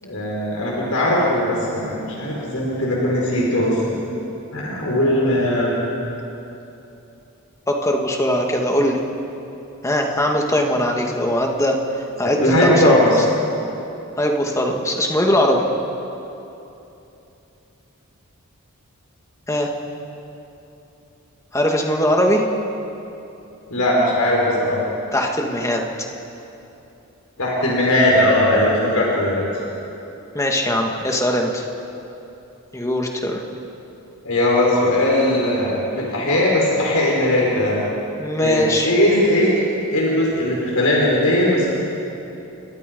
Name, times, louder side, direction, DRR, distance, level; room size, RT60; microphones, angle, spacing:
voice 1, 0.0-3.8 4.5-5.8 12.2-13.2 23.7-24.8 27.4-29.4 34.2-37.8 38.4-39.5 39.9-41.7, left 1 dB, 80° left, -4 dB, 5.1 m, -19 dB
voice 2, 7.7-9.0 9.8-13.2 14.2-15.7 19.5-19.7 21.5-22.4 25.1-25.8 30.3-31.6 32.7-33.4 38.2-38.9, equal, 15° left, 1 dB, 2.2 m, -20 dB
29.5 x 23.0 x 5.4 m, 2.9 s
head